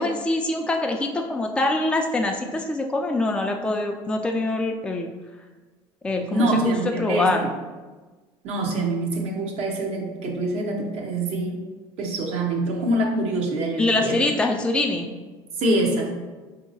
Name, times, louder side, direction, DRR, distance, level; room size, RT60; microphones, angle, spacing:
voice 1, 0.0-5.1 6.0-7.5 13.8-15.1, left 2 dB, 10° left, 2 dB, 0.3 m, -24 dB
voice 2, 6.3-7.5 8.4-11.6 12.0-14.2 15.6-16.1, right 2 dB, 55° right, 1 dB, 0.8 m, -25 dB
4.3 x 2.8 x 2.7 m, 1.3 s
supercardioid pair, 85°, 12 cm